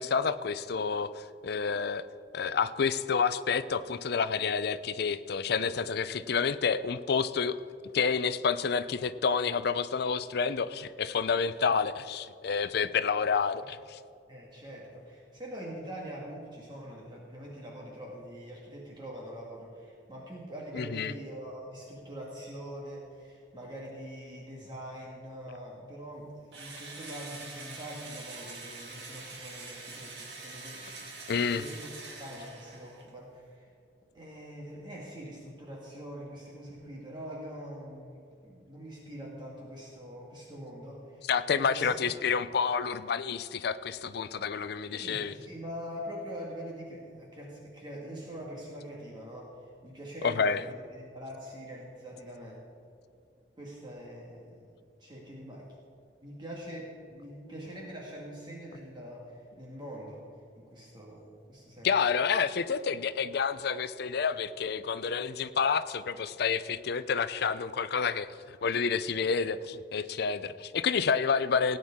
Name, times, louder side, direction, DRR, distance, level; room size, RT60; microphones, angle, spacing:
voice 1, 0.0-2.0 2.3-7.6 7.9-14.0 20.7-21.1 31.3-31.6 41.3-45.3 50.2-50.6 61.8-71.8, left 6 dB, 60° left, 14 dB, 0.5 m, -29 dB
voice 2, 14.3-31.9 32.2-33.7 34.1-42.2 44.9-52.6 53.6-54.7 55.0-55.7 56.2-60.3 60.6-61.9, equal, 25° right, -3 dB, 1.7 m, -44 dB
Engine / Drill, 26.5-33.1, right 3 dB, 65° right, 2.4 m, -45 dB
17.5 x 9.4 x 3.7 m, 2.4 s
head